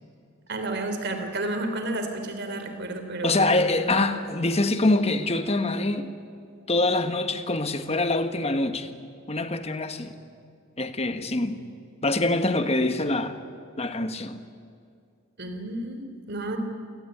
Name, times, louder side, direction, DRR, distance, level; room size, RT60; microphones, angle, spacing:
voice 1, 0.5-4.1 15.4-16.6, right 2 dB, 50° right, 3.5 m, -31 dB
voice 2, 3.2-6.1 6.7-8.9 9.3-10.1 10.8-11.6 12.0-13.4 13.8-14.4, left 2 dB, 30° left, 1.4 m, -25 dB
28.0 x 18.5 x 9.5 m
head